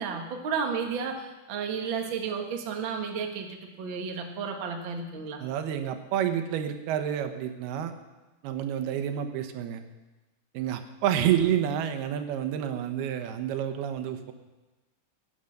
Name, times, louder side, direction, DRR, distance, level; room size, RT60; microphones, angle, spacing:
voice 1, 0.0-5.4, right 6 dB, 50° right, 3 dB, 1.6 m, -32 dB
voice 2, 5.4-7.9 8.4-9.8 10.5-14.3, right 10 dB, 85° right, 8 dB, 3.0 m, -29 dB
18.0 x 9.5 x 6.5 m, 1.1 s
omnidirectional pair, 4.4 m